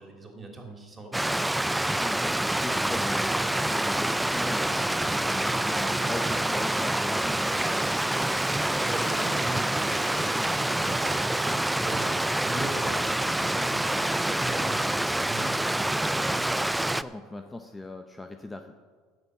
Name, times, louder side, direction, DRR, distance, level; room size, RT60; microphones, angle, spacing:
voice 1, 0.0-2.0 8.8-16.6, right 2 dB, 25° right, 2 dB, 3.0 m, -40 dB
Stream, 1.1-17.0, right 1 dB, 5° right, 0.4 m, -27 dB
voice 2, 1.7-7.9 16.7-18.7, left 2 dB, 15° left, 6 dB, 0.8 m, -40 dB
sound 1, 3.1-17.8, left 5 dB, 85° left, 1.3 m, -52 dB
sound 2, 5.5-12.1, right 12 dB, 65° right, 0.6 m, -46 dB
10.0 x 7.0 x 8.1 m, 1.5 s
supercardioid pair, 90°, 0 cm